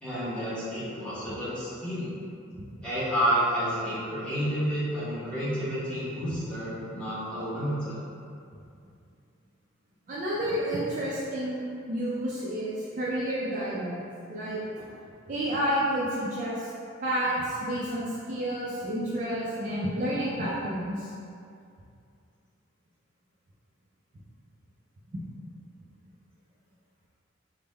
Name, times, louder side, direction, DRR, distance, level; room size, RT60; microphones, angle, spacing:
voice 1, 0.0-2.1 2.8-8.0, equal, 5° left, -13 dB, 0.9 m, -30 dB
voice 2, 10.1-14.0 14.3-14.9 15.3-16.7 17.0-21.1 25.1-25.2, right 1 dB, 35° right, -7 dB, 0.4 m, -30 dB
3.4 x 2.1 x 3.2 m, 2.4 s
head